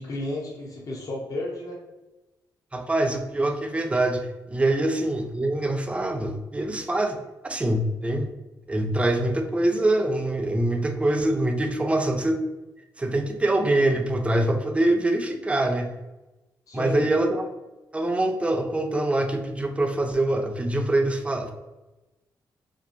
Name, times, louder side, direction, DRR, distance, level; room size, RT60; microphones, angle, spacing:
voice 1, 0.0-1.8 16.7-17.1, left 2 dB, 45° left, -3 dB, 0.6 m, -32 dB
voice 2, 2.7-7.2 7.4-8.3 8.7-12.4 13.0-15.9 16.7-17.5 17.9-21.5, right 1 dB, 15° right, 5 dB, 0.4 m, -24 dB
2.6 x 2.0 x 2.5 m, 1.0 s
cardioid pair, 80°, 8 cm